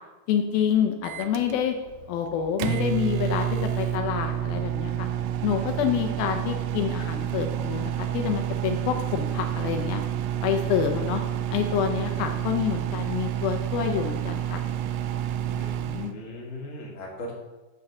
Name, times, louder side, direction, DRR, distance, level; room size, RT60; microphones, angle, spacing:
voice 1, 0.3-1.8 2.1-5.1 5.4-10.0 10.4-11.2 11.5-14.6 15.8-16.2, left 8 dB, 80° left, 5 dB, 2.4 m, -27 dB
Microwave oven, 1.0-16.1, right 11 dB, 85° right, 2.0 m, -29 dB
voice 2, 15.4-17.3, left 1 dB, 30° left, -3 dB, 1.5 m, -39 dB
7.6 x 6.2 x 7.0 m, 1.2 s
omnidirectional pair, 4.5 m